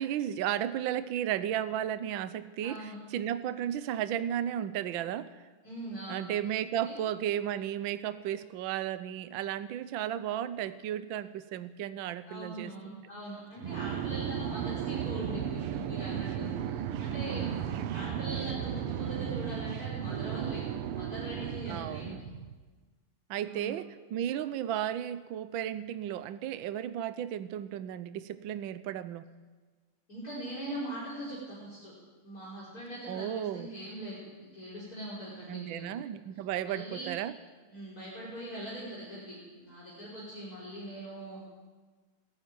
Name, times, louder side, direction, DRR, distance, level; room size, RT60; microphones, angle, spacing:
voice 1, 0.0-5.4 6.1-13.0 21.7-22.2 23.3-29.3 33.1-33.7 35.5-37.4, right 11 dB, 70° right, 13 dB, 1.4 m, -34 dB
voice 2, 2.6-3.0 5.6-6.3 6.8-7.0 12.2-17.5 17.9-20.7 20.9-22.3 23.4-23.7 30.1-31.9 32.2-35.9 36.6-37.1 37.7-41.4, right 1 dB, 40° left, -7 dB, 5.8 m, -41 dB
sound 1, 13.6-22.6, right 9 dB, 90° right, 1.8 m, -35 dB
20.5 x 13.5 x 9.3 m, 1.4 s
omnidirectional pair, 2.4 m